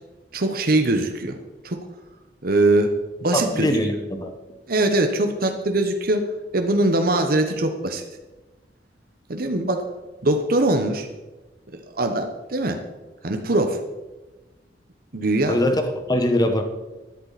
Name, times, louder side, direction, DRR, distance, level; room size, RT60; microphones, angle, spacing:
voice 1, 0.3-1.4 1.6-1.8 2.4-2.9 3.2-3.7 4.7-6.2 6.5-8.0 9.3-9.9 10.2-11.1 11.7-12.8 13.2-13.8 15.1-15.6, right 2 dB, 55° right, 5 dB, 1.0 m, -22 dB
voice 2, 3.3-4.3 15.5-15.8 16.1-16.6, left 1 dB, 25° left, 6 dB, 1.3 m, -21 dB
12.5 x 11.0 x 4.1 m, 1.1 s
head